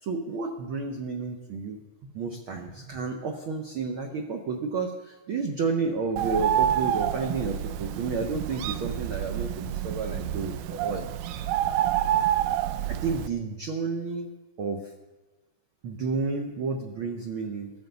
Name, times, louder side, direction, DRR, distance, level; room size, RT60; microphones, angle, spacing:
voice 1, 0.0-11.1 12.9-14.3 14.6-14.9 15.8-17.7, right 4 dB, 65° right, 2 dB, 1.3 m, -31 dB
Bird, 6.2-13.3, right 11 dB, 85° right, 1.6 m, -28 dB
15.5 x 9.3 x 6.9 m, 1.1 s
omnidirectional pair, 3.8 m